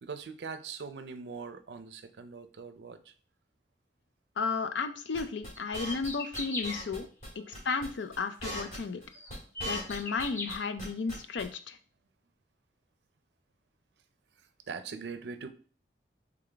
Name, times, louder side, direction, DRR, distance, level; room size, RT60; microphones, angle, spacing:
voice 1, 0.0-3.1 7.3-7.5 8.6-9.4 14.4-15.5, right 5 dB, 70° right, 10 dB, 0.5 m, -43 dB
voice 2, 4.4-7.1 7.6-9.0 9.6-11.8, left 4 dB, 85° left, 9 dB, 0.5 m, -33 dB
sound 1, 5.1-6.1 6.3-7.0 7.2-7.3 7.5-7.9 8.1-10.2 10.5-11.4, equal, 45° left, 2.2 m, -39 dB
sound 2, 5.5-6.8 8.5-8.6 9.1-10.5, left 2 dB, 15° left, 0.6 m, -38 dB
3.9 x 3.4 x 3.4 m, 0.42 s
head